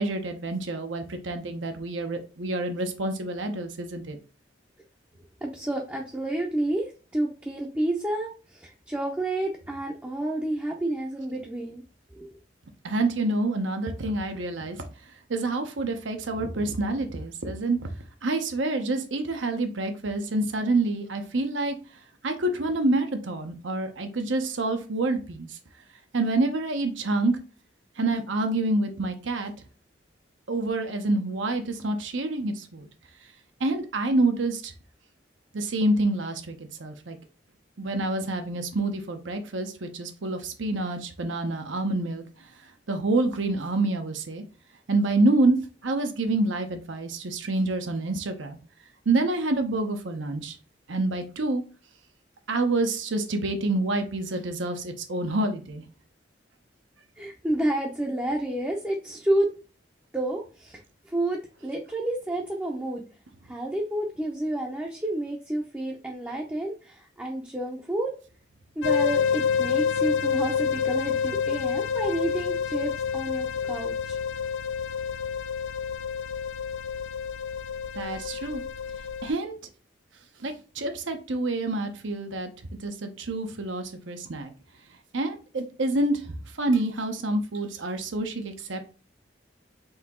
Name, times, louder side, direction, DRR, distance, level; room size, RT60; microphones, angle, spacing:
voice 1, 0.0-4.2 12.8-14.9 15.3-17.8 18.2-21.8 22.2-25.5 26.1-27.4 28.0-29.5 30.5-32.9 33.6-34.7 35.5-37.2 37.8-42.2 42.9-44.4 44.9-48.6 49.1-50.6 50.9-51.6 52.5-55.8 77.9-78.6 79.2-79.6 80.4-82.5 82.8-84.5 85.1-88.8, right 2 dB, 80° right, 6 dB, 0.8 m, -27 dB
voice 2, 5.4-11.8 12.2-12.3 57.2-59.5 60.1-63.0 63.4-68.1 68.8-74.2, right 1 dB, 10° right, -1 dB, 0.5 m, -30 dB
sound 1, 68.8-79.3, left 7 dB, 80° left, 0.4 m, -28 dB
4.2 x 2.8 x 3.6 m, 0.35 s
head